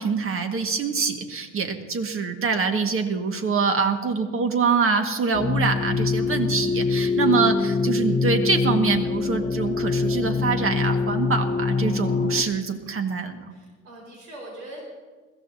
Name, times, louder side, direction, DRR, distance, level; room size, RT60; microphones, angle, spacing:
voice 1, 0.0-13.5, right 5 dB, 35° right, 5 dB, 1.8 m, -25 dB
sound 1, 5.3-12.4, left 4 dB, 25° left, 1.0 m, -24 dB
voice 2, 6.2-7.2 13.5-14.8, right 1 dB, 80° right, -1 dB, 5.1 m, -43 dB
21.5 x 15.0 x 2.8 m, 1.4 s
hypercardioid pair, 75°, 36 cm